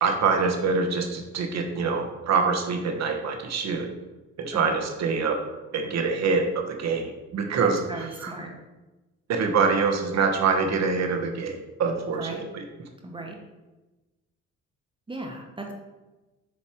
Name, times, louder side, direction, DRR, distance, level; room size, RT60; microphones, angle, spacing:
voice 1, 0.0-3.9 4.4-5.4 5.7-8.3 9.3-12.6, right 5 dB, 60° right, 4 dB, 1.1 m, -25 dB
voice 2, 7.6-8.5 12.1-12.4 13.0-13.4 15.1-15.7, right 2 dB, 15° right, 1 dB, 1.1 m, -37 dB
7.7 x 3.2 x 4.3 m, 1.1 s
cardioid pair, 90°, 30 cm